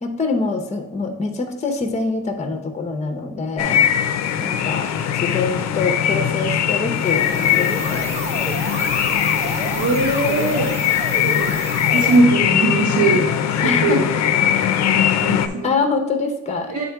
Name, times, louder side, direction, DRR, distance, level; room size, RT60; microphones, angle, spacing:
voice 1, 0.0-3.8 4.4-8.1 13.6-14.1 14.5-14.6 15.6-16.7, left 3 dB, 25° left, 4 dB, 0.7 m, -25 dB
sound 1, 3.6-15.5, left 9 dB, 65° left, 0.5 m, -20 dB
sound 2, 6.9-12.2, right 2 dB, 25° right, 0.8 m, -30 dB
voice 2, 9.7-10.7 11.2-11.5 11.9-13.2 13.8-14.0 14.9-15.7 16.7-16.8, right 2 dB, 85° right, -6 dB, 2.3 m, -20 dB
9.2 x 3.7 x 3.5 m, 0.98 s
cardioid pair, 120°, 29 cm